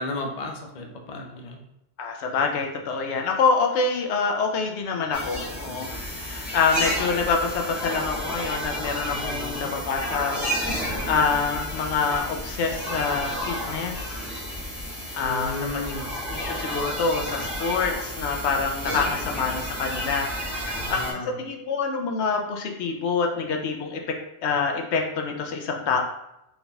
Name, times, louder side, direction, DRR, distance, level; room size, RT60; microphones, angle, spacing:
voice 1, 0.0-1.6 9.1-9.7 15.2-16.1 20.5-21.3, left 2 dB, 45° left, 2 dB, 0.5 m, -34 dB
voice 2, 2.0-14.4 15.1-15.9 16.3-24.0 24.4-26.0, left 5 dB, 75° left, 2 dB, 0.9 m, -26 dB
sound 1, 5.1-21.1, equal, ahead, 0.9 m, -31 dB
3.9 x 3.5 x 2.3 m, 0.86 s
omnidirectional pair, 1.2 m